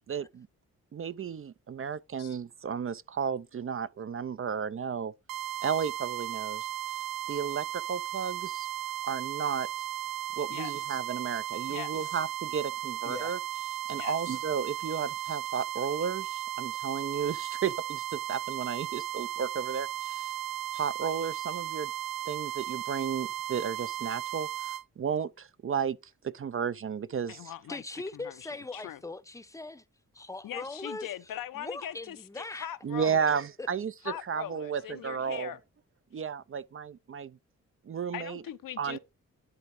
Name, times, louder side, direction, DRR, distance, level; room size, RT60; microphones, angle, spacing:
voice 1, 0.1-0.5 0.9-5.1 5.6-6.7 7.3-8.7 9.0-9.7 10.4-13.4 13.9-20.3 20.7-21.9 22.3-24.5 25.0-26.0 26.2-27.4 32.8-33.9 34.3-35.5 36.1-37.4 37.9-38.4 38.8-39.0, right 7 dB, 40° right, 0.5 m, -33 dB
sound 1, 5.3-24.8, right 12 dB, 85° right, 0.6 m, -36 dB
voice 2, 10.5-11.0 11.7-12.2 13.9-14.2 27.3-27.8 28.1-29.0 30.4-33.4 34.0-35.6 38.1-39.0, left 11 dB, 75° left, 0.8 m, -41 dB
voice 3, 13.0-13.4 27.7-29.8 30.1-31.1 31.6-32.7 33.6-33.7, left 2 dB, 10° left, 0.7 m, -40 dB
10.5 x 3.6 x 4.8 m
supercardioid pair, 55°, 33 cm